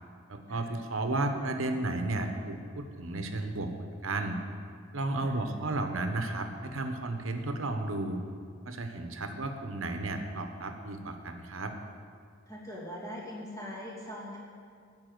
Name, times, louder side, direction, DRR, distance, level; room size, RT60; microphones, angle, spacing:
voice 1, 0.3-4.4 4.9-8.2 8.6-11.7, right 2 dB, 80° right, 6 dB, 1.1 m, -33 dB
voice 2, 12.5-14.4, equal, 15° left, -6 dB, 2.7 m, -41 dB
13.0 x 5.6 x 9.3 m, 2.2 s
head